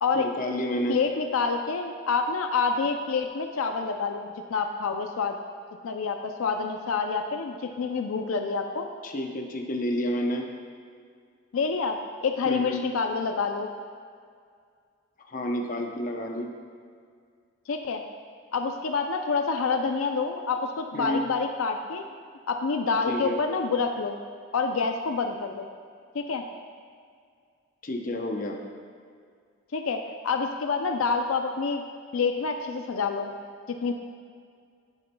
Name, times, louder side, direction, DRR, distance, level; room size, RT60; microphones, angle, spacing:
voice 1, 0.1-1.0 9.0-10.4 12.4-12.8 15.3-16.5 20.9-21.3 23.1-23.4 27.8-28.6, left 1 dB, 40° left, 2 dB, 0.7 m, -30 dB
voice 2, 0.9-5.4 5.8-8.9 11.5-13.7 17.7-18.0 18.5-22.0 22.5-24.2 24.5-25.7 26.1-26.4 29.7-31.8 32.1-33.3 33.7-33.9, left 4 dB, 80° left, 5 dB, 0.5 m, -27 dB
9.8 x 9.3 x 2.2 m, 2.2 s
head